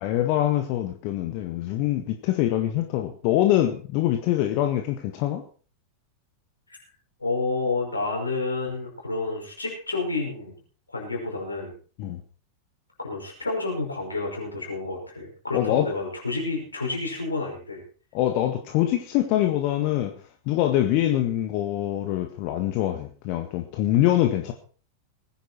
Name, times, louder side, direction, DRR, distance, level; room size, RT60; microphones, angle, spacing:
voice 1, 0.0-5.4 12.0-12.2 15.5-15.9 18.1-20.1 20.5-24.5, left 13 dB, 45° left, 5 dB, 1.6 m, -24 dB
voice 2, 7.2-10.6 10.9-11.7 13.0-17.8, left 3 dB, 80° left, 0 dB, 5.5 m, -29 dB
19.5 x 10.5 x 4.4 m, 0.40 s
figure-of-eight pair, 90°, 0 cm